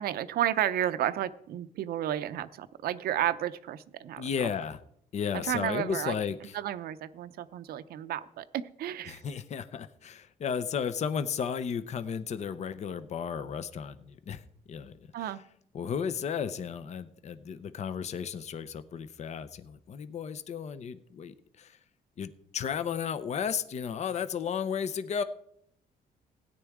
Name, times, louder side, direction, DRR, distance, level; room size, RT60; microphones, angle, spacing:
voice 1, 0.0-4.2 5.4-6.2 6.5-9.2 15.1-15.4, right 11 dB, 80° right, 13 dB, 0.6 m, -32 dB
voice 2, 4.2-4.8 5.1-6.6 9.1-14.4 14.7-15.3 15.7-21.8 22.2-25.2, left 7 dB, 45° left, 12 dB, 0.7 m, -34 dB
17.0 x 9.8 x 3.6 m, 0.72 s
cardioid pair, 125°, 15 cm